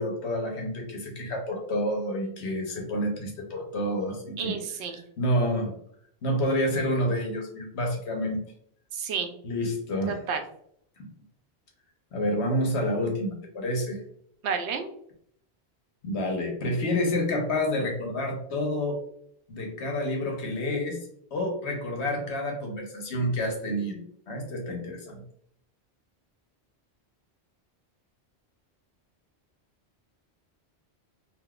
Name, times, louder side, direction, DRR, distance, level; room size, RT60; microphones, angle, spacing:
voice 1, 0.0-4.6 5.2-5.7 6.2-8.4 9.4-10.2 11.0-11.1 12.1-14.0 16.0-19.0 19.5-21.0 21.3-24.0 24.3-25.2, left 1 dB, 85° left, 2 dB, 1.2 m, -28 dB
voice 2, 4.4-5.0 8.9-9.3 10.3-10.4 14.4-14.9, right 6 dB, 85° right, 6 dB, 0.9 m, -30 dB
3.6 x 2.6 x 2.3 m, 0.67 s
omnidirectional pair, 1.1 m